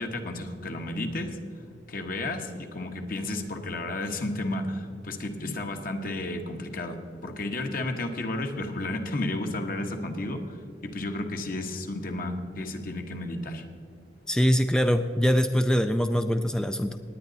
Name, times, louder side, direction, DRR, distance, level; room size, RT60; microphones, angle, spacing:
voice 1, 0.0-1.4 1.9-13.6, left 2 dB, 55° left, 4 dB, 1.4 m, -32 dB
voice 2, 14.3-17.0, equal, 5° left, 8 dB, 0.4 m, -23 dB
18.5 x 9.5 x 4.0 m, 2.3 s
head